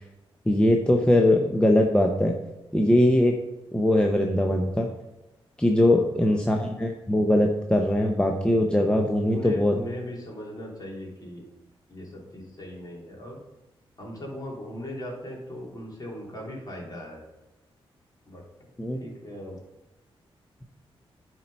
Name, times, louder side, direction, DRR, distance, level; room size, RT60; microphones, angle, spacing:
voice 1, 0.5-2.3 2.7-3.3 3.7-4.9 5.6-9.7 18.8-19.0, left 1 dB, 10° left, 1 dB, 0.8 m, -21 dB
voice 2, 5.9-6.5 9.3-11.5 11.9-13.4 14.0-17.2 18.2-18.4 19.0-19.6, left 1 dB, 40° left, -2 dB, 3.0 m, -38 dB
10.5 x 4.5 x 5.4 m, 1.0 s
cardioid pair, 95°, 10 cm